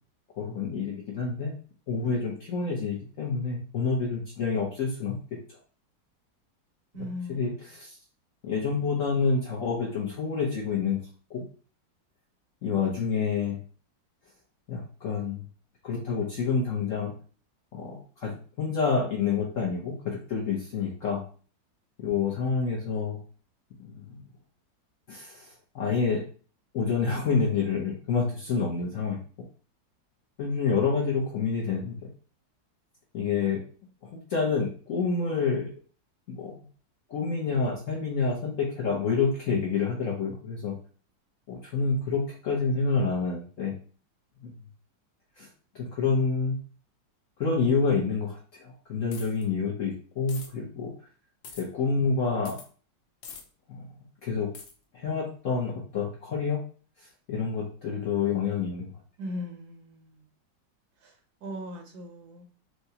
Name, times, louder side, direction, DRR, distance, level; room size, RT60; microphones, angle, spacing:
voice 1, 0.4-1.5 1.9-5.2 6.9-8.0 8.4-11.0 11.3-11.5 12.6-13.6 14.7-15.4 15.8-17.1 17.7-21.2 22.0-23.2 23.8-24.2 25.1-26.2 26.7-29.2 30.4-32.0 33.1-33.6 34.0-35.7 36.3-36.6 37.1-40.7 41.5-43.7 44.4-44.5 45.4-45.5 45.7-46.6 47.4-50.9 51.6-52.6 53.7-53.8 54.2-54.5 54.9-56.6 57.3-58.9, left 5 dB, 60° left, -3 dB, 0.8 m, -28 dB
voice 2, 6.9-7.7 59.2-60.3 61.0-61.2 61.4-62.5, left 1 dB, 70° right, 2 dB, 1.1 m, -39 dB
sound 1, 49.1-49.4 50.3-50.5 51.4-51.6 52.4-52.7 53.2-53.4 54.5-54.7, left 5 dB, 90° left, 1.5 m, -43 dB
4.7 x 2.1 x 2.7 m, 0.40 s
omnidirectional pair, 2.0 m